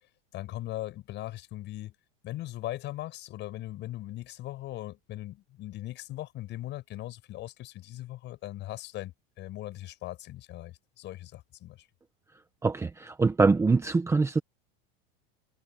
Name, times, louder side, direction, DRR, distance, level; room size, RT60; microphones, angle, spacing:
voice 1, 0.3-2.0 2.2-11.9, left 15 dB, 40° left, 7.2 m, -39 dB
voice 2, 12.6-14.4, right 4 dB, 10° right, 1.2 m, -24 dB
supercardioid pair, 155°, 29 cm